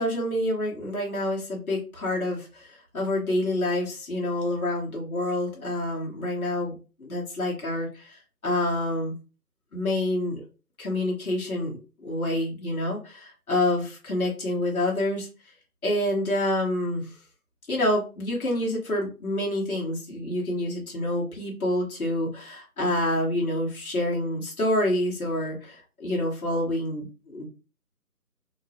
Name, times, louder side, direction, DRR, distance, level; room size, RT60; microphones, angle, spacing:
voice 1, 0.0-9.2 9.7-10.4 10.8-15.3 15.8-17.1 17.7-27.5, left 1 dB, 65° left, -3 dB, 1.3 m, -27 dB
3.7 x 2.0 x 2.8 m, 0.34 s
figure-of-eight pair, 175°, 47 cm